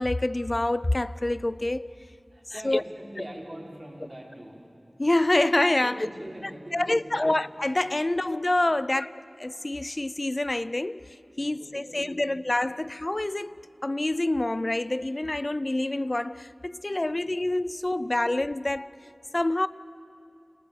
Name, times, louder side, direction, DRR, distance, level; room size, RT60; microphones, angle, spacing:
voice 1, 0.0-1.9 2.6-2.8 5.0-6.0 6.7-9.1 9.4-18.9 19.3-19.7, left 1 dB, 45° left, 0.5 m, -26 dB
voice 2, 2.3-4.6 5.8-7.3 8.0-8.2 8.7-9.0 11.4-12.4 18.0-18.2, right 1 dB, 30° right, 5.5 m, -43 dB
28.5 x 19.0 x 7.0 m
wide cardioid pair, 45°, 0 cm